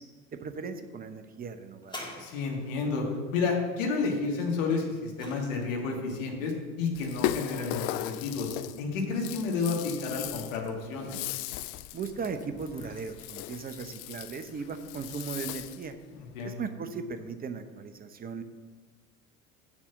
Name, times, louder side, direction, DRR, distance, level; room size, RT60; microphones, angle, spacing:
voice 1, 0.3-2.0 11.9-16.0 16.4-18.4, right 5 dB, 20° right, 8 dB, 0.8 m, -37 dB
sound 1, 1.8-2.9 4.6-6.0 6.8-6.9, left 1 dB, 10° left, 2.2 m, -45 dB
voice 2, 2.2-3.0 3.3-8.5 8.8-11.1 16.1-16.6, left 4 dB, 65° left, 0 dB, 2.2 m, -31 dB
Rattle (instrument), 6.9-15.9, left 14 dB, 40° left, 0.4 m, -37 dB
7.1 x 6.4 x 7.1 m, 1.4 s
figure-of-eight pair, 65°, 43 cm